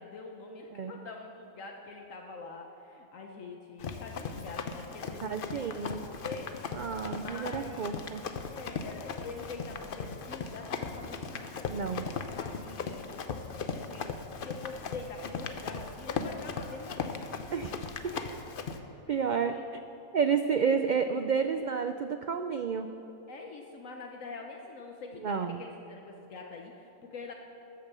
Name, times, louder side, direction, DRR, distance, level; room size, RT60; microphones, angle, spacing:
voice 1, 0.0-8.0 8.5-14.1 14.4-17.2 18.1-18.4 18.7-19.7 20.6-20.7 23.3-27.3, left 4 dB, 70° left, 2 dB, 1.3 m, -45 dB
Run, 3.8-18.8, left 5 dB, 50° left, 0.8 m, -38 dB
voice 2, 5.2-6.0 6.7-8.3 11.7-12.0 17.5-17.7 18.0-18.1 19.1-19.6 20.1-22.9 25.2-25.6, right 6 dB, 90° right, 8 dB, 0.4 m, -30 dB
13.5 x 9.1 x 6.8 m, 3.0 s
omnidirectional pair, 1.4 m